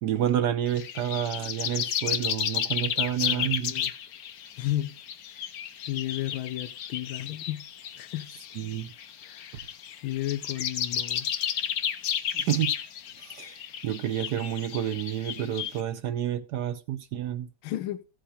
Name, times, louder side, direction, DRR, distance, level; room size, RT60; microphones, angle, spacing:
voice 1, 0.0-3.7 8.6-8.9 12.3-12.7 13.2-17.5, right 11 dB, 65° right, 1.1 m, -29 dB
sound 1, 0.7-15.8, left 9 dB, 60° left, 1.0 m, -33 dB
voice 2, 3.2-3.9 4.6-5.0 5.3-5.4 5.9-7.7 8.0-8.3 9.2-9.7 10.0-11.3 17.6-18.1, left 14 dB, 80° left, 1.5 m, -33 dB
15.5 x 5.8 x 4.9 m
omnidirectional pair, 2.2 m